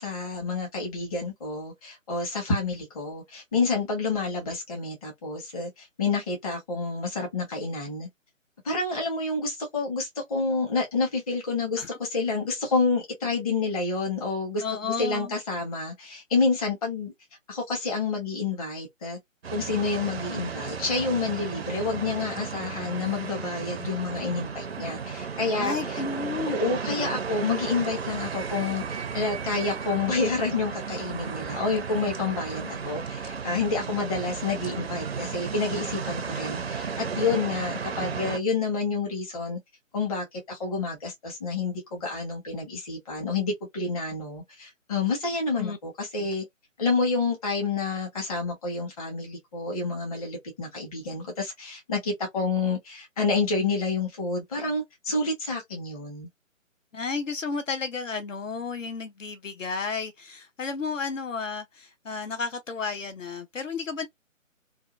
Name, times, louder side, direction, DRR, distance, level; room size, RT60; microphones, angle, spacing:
voice 1, 0.0-8.1 8.6-17.1 17.5-19.2 19.5-26.0 26.5-39.6 39.9-46.4 46.8-56.3, left 4 dB, 25° left, 1.1 m, -29 dB
voice 2, 14.6-15.3 25.5-26.6 45.6-45.8 46.2-46.3 56.9-64.1, left 5 dB, 65° left, 0.7 m, -32 dB
sound 1, 19.4-38.4, right 6 dB, 50° right, 0.4 m, -34 dB
2.7 x 2.3 x 2.4 m
figure-of-eight pair, 155°, 40 cm